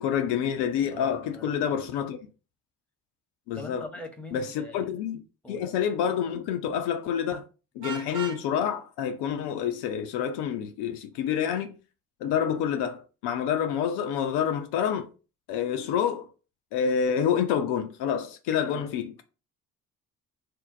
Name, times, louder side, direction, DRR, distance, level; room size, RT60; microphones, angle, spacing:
voice 1, 0.0-2.2 3.5-3.9 4.3-5.2 5.5-7.4 7.8-11.8 12.2-15.1 15.5-16.3 16.7-19.1, left 8 dB, 65° left, 0.5 m, -28 dB
voice 2, 0.9-1.8 3.5-4.9 5.4-5.6 18.5-18.9, left 1 dB, 5° left, 0.9 m, -43 dB
Vehicle horn car horn honking, 7.8-8.4, right 7 dB, 45° right, 0.6 m, -37 dB
2.5 x 2.0 x 3.9 m
hypercardioid pair, 45°, 43 cm